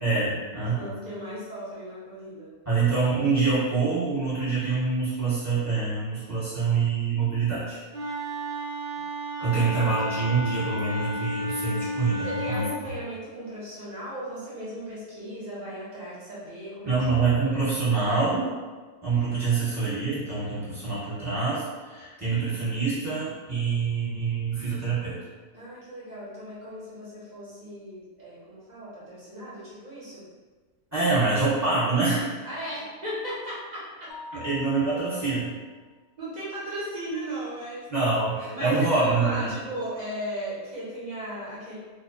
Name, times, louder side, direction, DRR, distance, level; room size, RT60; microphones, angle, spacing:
voice 1, 0.0-0.9 2.6-7.8 9.4-12.6 16.8-18.5 19.0-25.1 30.9-32.3 34.4-35.5 37.9-39.5, right 4 dB, 15° right, -11 dB, 0.9 m, -25 dB
voice 2, 0.8-2.5 12.2-17.3 25.5-30.2 32.4-34.1 36.2-37.9 38.5-41.8, right 1 dB, 45° right, -9 dB, 0.6 m, -36 dB
Wind instrument woodwind instrument, 7.9-12.8, equal, 85° right, 0.4 m, -32 dB
Mallet percussion, 34.1-35.9, left 5 dB, 65° left, 0.5 m, -44 dB
2.4 x 2.0 x 2.5 m, 1.4 s
omnidirectional pair, 1.4 m